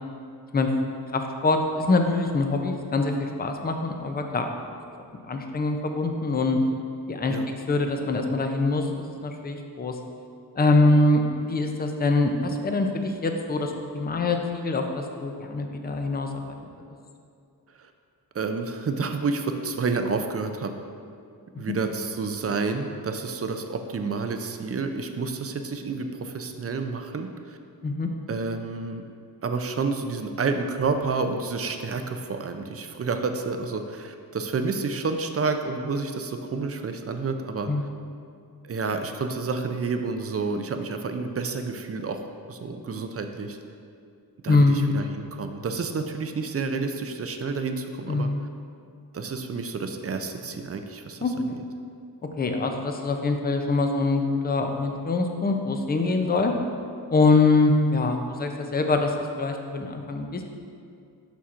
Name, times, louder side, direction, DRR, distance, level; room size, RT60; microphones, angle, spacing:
voice 1, 1.1-4.5 5.3-6.6 7.1-7.4 7.7-10.0 10.6-16.5 21.5-21.8 27.8-28.1 37.7-37.9 44.5-44.9 48.1-48.4 51.2-51.3 52.4-56.5 57.1-60.4, left 3 dB, 25° left, 4 dB, 0.5 m, -24 dB
voice 2, 18.3-20.7 21.6-27.6 28.3-29.0 29.4-37.7 38.6-42.2 42.5-43.6 44.4-48.3 49.1-51.2, right 4 dB, 40° right, 6 dB, 0.4 m, -29 dB
7.0 x 5.9 x 2.5 m, 2.4 s
wide cardioid pair, 85°, 40 cm